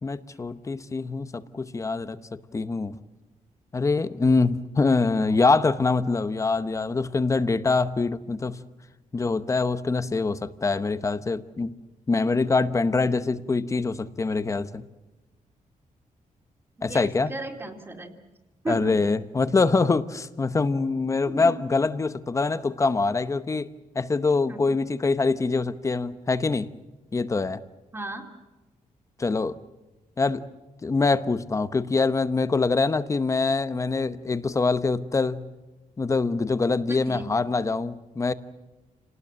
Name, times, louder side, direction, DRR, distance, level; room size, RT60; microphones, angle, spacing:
voice 1, 0.0-2.2 2.5-3.0 3.7-8.6 9.1-11.7 12.1-14.8 16.8-17.3 18.7-23.7 23.9-26.7 27.1-27.6 29.2-29.5 30.2-30.4 30.8-35.4 36.0-38.3, left 3 dB, 20° left, 13 dB, 0.9 m, -24 dB
voice 2, 16.8-18.1 18.6-19.2 21.3-21.6 24.5-24.8 27.9-28.2 37.1-37.4, right 2 dB, 15° right, 2 dB, 2.5 m, -35 dB
29.5 x 19.0 x 7.6 m, 1.1 s
wide cardioid pair, 175°, 14 cm